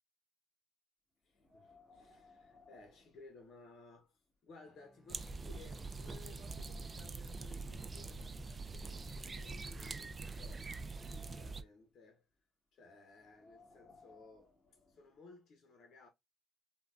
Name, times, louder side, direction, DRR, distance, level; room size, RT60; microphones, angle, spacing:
voice 1, 1.2-12.3 12.7-14.5 14.9-16.1, left 3 dB, 65° left, 0.8 m, -59 dB
Wind, 1.3-3.9 4.3-4.4 5.1-5.2 5.6-7.3 8.1-9.6 10.2-11.8 13.1-15.2, left 3 dB, 20° left, 1.4 m, -65 dB
Bowed string instrument, 4.6-8.2, equal, 5° right, 0.7 m, -61 dB
sound 1, 5.1-11.6, right 3 dB, 35° right, 0.3 m, -44 dB
3.6 x 2.2 x 2.3 m
cardioid pair, 90°, 0 cm